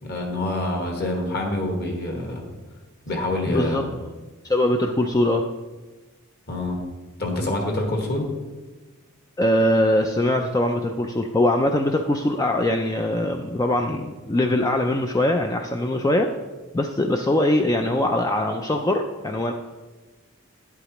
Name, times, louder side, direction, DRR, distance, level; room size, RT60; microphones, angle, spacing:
voice 1, 0.0-2.4 3.1-3.8 6.5-6.8 7.2-8.3, left 1 dB, 50° left, 2 dB, 1.6 m, -26 dB
voice 2, 3.5-3.8 4.4-5.5 9.4-16.4 16.7-19.5, left 1 dB, 15° left, 4 dB, 0.3 m, -22 dB
10.5 x 8.2 x 3.0 m, 1.2 s
head